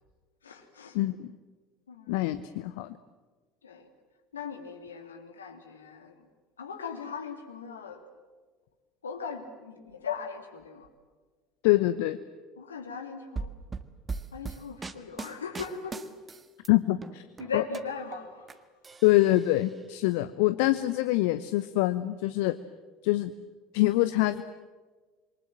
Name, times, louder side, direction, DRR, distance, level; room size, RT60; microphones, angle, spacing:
voice 1, 0.4-1.0 1.9-2.2 3.6-3.9 4.3-6.3 6.6-8.0 9.0-10.9 12.6-13.5 14.3-16.1 17.4-18.7, left 5 dB, 80° left, 5 dB, 2.9 m, -39 dB
voice 2, 0.9-1.3 2.1-3.0 11.6-12.2 16.7-17.2 17.5-17.6 19.0-22.6 23.0-23.3 23.7-24.4, left 17 dB, 60° left, 12 dB, 0.9 m, -25 dB
sound 1, 13.4-16.7 17.0-18.5 18.8-19.7, right 4 dB, 20° right, 1.7 m, -39 dB
27.5 x 24.0 x 7.7 m, 1.4 s
figure-of-eight pair, 65°, 0 cm